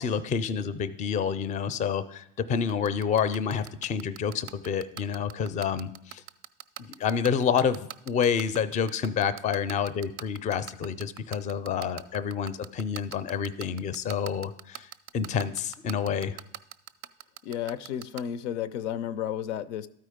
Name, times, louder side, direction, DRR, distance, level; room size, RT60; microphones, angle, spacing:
voice 1, 0.0-6.2 7.0-14.9 15.1-16.4, left 7 dB, 20° left, 14 dB, 0.4 m, -28 dB
sound 1, 2.7-18.2, right 13 dB, 40° right, 0.4 m, -40 dB
voice 2, 17.4-19.9, left 10 dB, 90° left, 16 dB, 0.6 m, -32 dB
12.5 x 4.6 x 5.0 m, 0.79 s
supercardioid pair, 115°, 34 cm